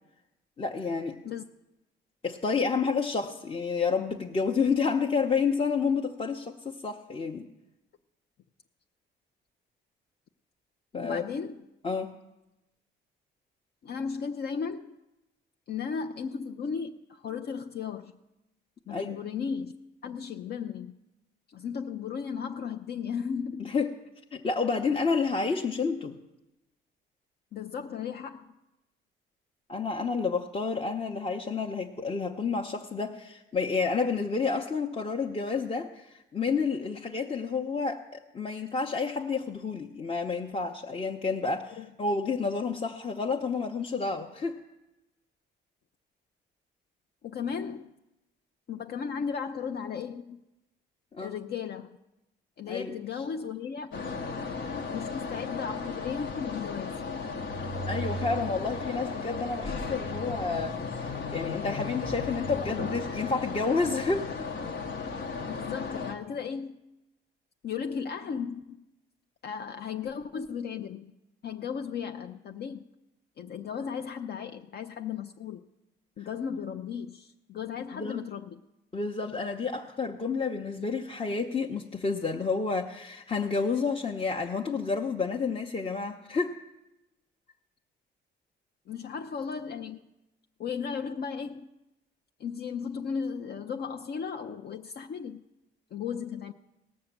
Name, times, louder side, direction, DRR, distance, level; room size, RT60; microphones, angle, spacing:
voice 1, 0.6-1.2 2.2-7.5 10.9-11.2 11.8-12.1 18.9-19.2 23.6-23.9 24.3-26.2 29.7-44.6 51.1-51.3 52.7-53.0 57.9-64.5 77.9-78.2 78.9-86.6, left 4 dB, 30° left, 1 dB, 0.9 m, -30 dB
voice 2, 11.0-11.6 13.8-15.0 15.7-18.1 18.9-19.7 20.0-21.0 21.5-23.7 27.5-28.5 41.8-41.9 47.2-47.9 48.7-50.4 51.2-52.0 52.6-54.0 54.9-57.0 62.6-62.8 65.5-66.8 67.6-68.8 69.4-71.1 71.4-72.8 73.4-75.6 76.2-78.6 88.9-90.0 90.6-91.7 92.4-95.5 95.9-96.5, left 6 dB, 55° left, 6 dB, 0.6 m, -35 dB
sound 1, 53.9-66.1, left 4 dB, 75° left, 1.3 m, -35 dB
18.0 x 6.5 x 7.3 m, 0.98 s
cardioid pair, 90°, 20 cm